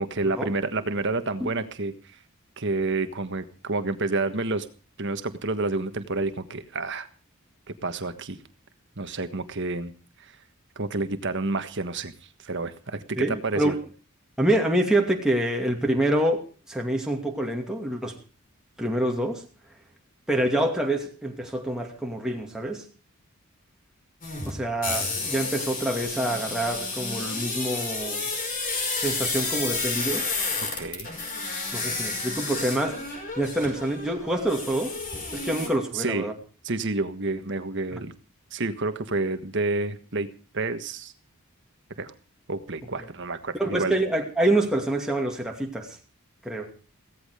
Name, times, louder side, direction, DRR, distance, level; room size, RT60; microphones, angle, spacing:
voice 1, 0.0-1.9 2.6-4.7 5.0-7.1 7.7-8.4 9.0-9.9 10.8-12.1 12.4-13.8 30.7-31.1 35.9-36.3 36.6-38.1 38.5-40.3 40.5-41.1 42.0-42.1 42.5-44.0, right 3 dB, 55° right, 10 dB, 1.5 m, -29 dB
voice 2, 13.2-13.8 14.4-16.4 16.7-18.2 18.8-19.4 20.3-22.8 24.5-28.3 29.0-30.3 31.7-35.0 35.3-36.3 43.6-46.0 46.4-46.7, right 1 dB, 5° right, 0 dB, 2.5 m, -26 dB
sound 1, 24.2-35.7, left 3 dB, 40° left, 5.4 m, -31 dB
16.5 x 14.0 x 5.0 m, 0.37 s
head